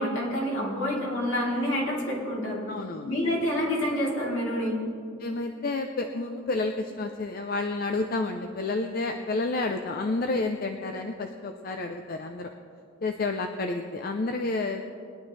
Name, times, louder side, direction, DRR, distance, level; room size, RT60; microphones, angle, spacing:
voice 1, 0.0-2.6 3.0-4.8, equal, 70° left, -5 dB, 3.4 m, -28 dB
voice 2, 2.7-3.1 5.2-12.5 13.0-14.8, left 3 dB, 45° left, 5 dB, 0.5 m, -30 dB
21.5 x 10.5 x 3.2 m, 2.5 s
head